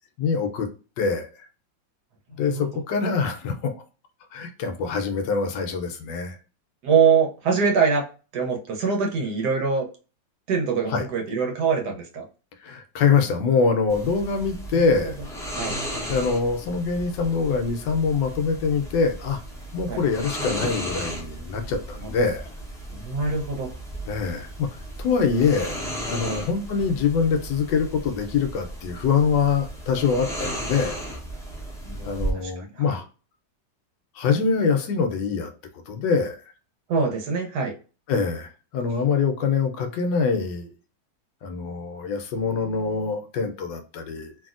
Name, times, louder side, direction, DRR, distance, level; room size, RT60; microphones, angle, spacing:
voice 1, 0.2-0.7 1.0-1.3 2.4-3.7 4.3-6.4 10.9-11.1 12.6-15.1 16.1-19.4 19.7-22.4 24.1-24.7 25.0-25.8 26.0-31.0 32.0-33.0 34.2-35.5 35.9-36.4 38.1-40.7 41.4-44.3, left 5 dB, 75° left, 6 dB, 1.2 m, -24 dB
voice 2, 2.4-2.8 6.8-8.0 8.3-9.8 10.5-12.2 14.7-15.1 15.6-15.7 19.9-20.0 22.0-22.2 22.9-23.7 26.2-26.4 31.8-33.0 36.9-37.7, right 6 dB, 65° right, 1 dB, 1.2 m, -24 dB
sound 1, 13.9-32.3, right 1 dB, 5° left, 0.3 m, -35 dB
3.1 x 2.6 x 2.4 m, 0.35 s
omnidirectional pair, 2.0 m